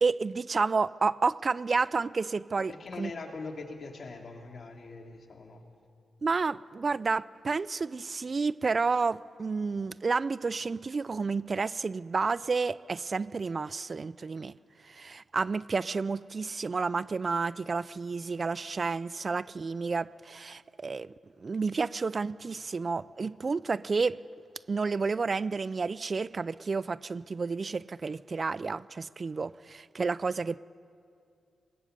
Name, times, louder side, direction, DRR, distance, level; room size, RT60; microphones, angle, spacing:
voice 1, 0.0-2.7 3.0-3.1 6.2-14.6 14.8-21.1 21.4-24.2 24.7-30.6, right 4 dB, 50° right, 0.4 m, -30 dB
voice 2, 2.6-5.6, left 3 dB, 60° left, 2.8 m, -42 dB
20.0 x 20.0 x 8.1 m
supercardioid pair, 45°, 0 cm